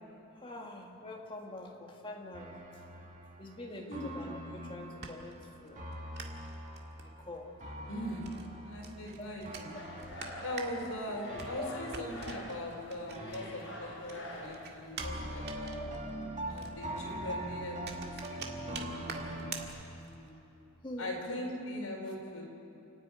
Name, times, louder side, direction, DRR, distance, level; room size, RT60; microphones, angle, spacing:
voice 1, 0.3-2.6 3.4-5.9 7.0-7.5 9.2-9.3 11.6-11.7 20.8-21.5, left 1 dB, 25° left, 1 dB, 2.0 m, -45 dB
sound 1, 2.3-12.8 13.1-14.6 15.0-19.6, right 1 dB, 35° right, 1.9 m, -43 dB
voice 2, 3.7-4.0 7.9-8.2 8.6-9.7 10.4-15.9 16.5-17.9 18.3-19.4 19.9-20.3 21.0-22.4, left 1 dB, 80° left, -1 dB, 4.8 m, -41 dB
sound 2, 4.6-13.8 14.0-20.3, right 5 dB, 50° right, 1.8 m, -47 dB
sound 3, 9.7-15.0, left 1 dB, 55° left, 5.3 m, -47 dB
29.0 x 9.7 x 9.2 m, 2.8 s
head